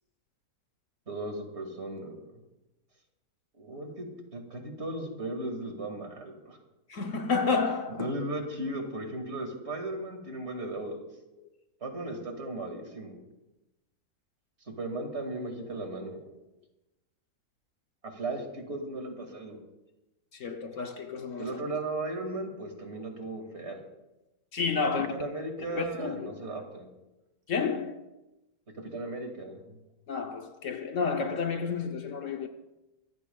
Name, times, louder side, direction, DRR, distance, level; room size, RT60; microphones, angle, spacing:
voice 1, 1.1-2.2 3.6-6.6 8.0-11.0 11.8-13.2 14.6-16.2 18.0-19.6 21.4-23.8 25.1-26.9 28.8-29.8, right 2 dB, 45° right, 2.4 m, -36 dB
voice 2, 6.9-8.1 20.3-21.6 24.5-25.1 25.6-26.3 27.5-28.0 30.1-32.5, left 5 dB, 60° left, 1.2 m, -30 dB
24.5 x 15.0 x 2.3 m
omnidirectional pair, 1.6 m